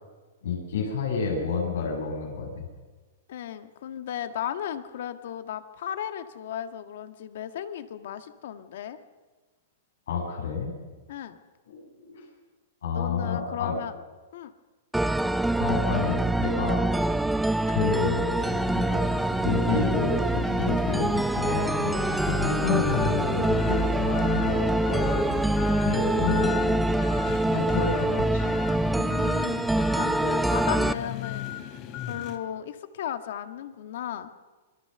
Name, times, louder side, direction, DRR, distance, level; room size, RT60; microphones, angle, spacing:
voice 1, 0.4-2.6 10.1-10.7 11.7-12.2 12.8-13.7 15.6-17.2 17.7-19.0 19.4-26.8 27.5-28.5, left 5 dB, 90° left, -1 dB, 7.8 m, -30 dB
voice 2, 3.3-9.0 11.1-11.4 12.9-13.9 14.3-14.5 22.4-23.3 26.1-26.8 27.5-28.3 28.9-31.5 32.1-34.3, left 10 dB, 70° left, 9 dB, 1.7 m, -36 dB
sound 1, 14.9-30.9, right 1 dB, 5° right, 0.8 m, -25 dB
sound 2, 18.4-32.4, left 10 dB, 40° left, 3.1 m, -38 dB
27.0 x 21.5 x 6.9 m, 1.3 s
hypercardioid pair, 145°, 0 cm